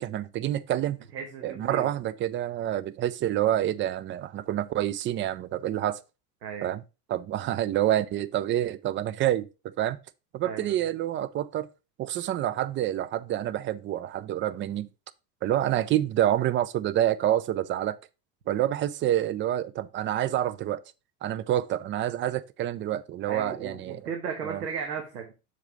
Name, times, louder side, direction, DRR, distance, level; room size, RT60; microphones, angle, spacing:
voice 1, 0.0-1.0 1.4-6.0 6.6-6.8 7.1-10.0 10.3-11.7 12.0-14.9 15.4-18.0 18.5-20.8 21.2-24.0 24.4-24.6, right 12 dB, 25° right, 0.4 m, -27 dB
voice 2, 1.1-1.9 6.4-6.7 10.4-10.8 23.2-25.3, right 6 dB, 80° right, 1.4 m, -35 dB
7.2 x 4.1 x 4.7 m
hypercardioid pair, 80°, 47 cm